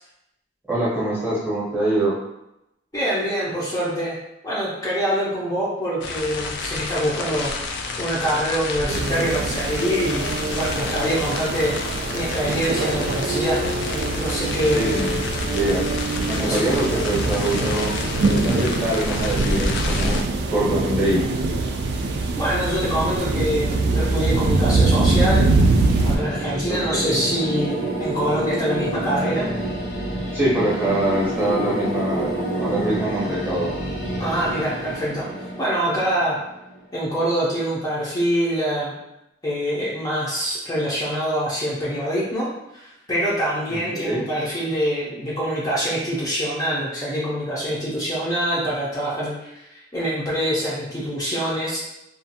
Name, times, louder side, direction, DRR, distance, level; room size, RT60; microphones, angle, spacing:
voice 1, 0.7-2.2 14.7-15.2 15.5-15.8 16.3-17.9 18.4-21.3 26.7-27.2 30.3-33.7 43.7-44.2, right 1 dB, 10° right, -7 dB, 0.8 m, -24 dB
voice 2, 2.9-4.2 4.4-7.5 8.0-11.7 12.1-13.6 14.2-15.0 16.4-16.6 22.4-25.4 26.0-29.5 34.2-35.3 35.6-36.4 36.9-38.9 39.4-42.5 42.7-51.8, equal, 20° left, -8 dB, 0.6 m, -25 dB
sound 1, 6.0-20.2, left 3 dB, 65° left, 0.3 m, -30 dB
sound 2, 8.9-26.2, right 3 dB, 60° right, 0.3 m, -23 dB
sound 3, 21.7-36.8, right 1 dB, 90° left, 1.0 m, -29 dB
2.5 x 2.3 x 2.7 m, 0.87 s
head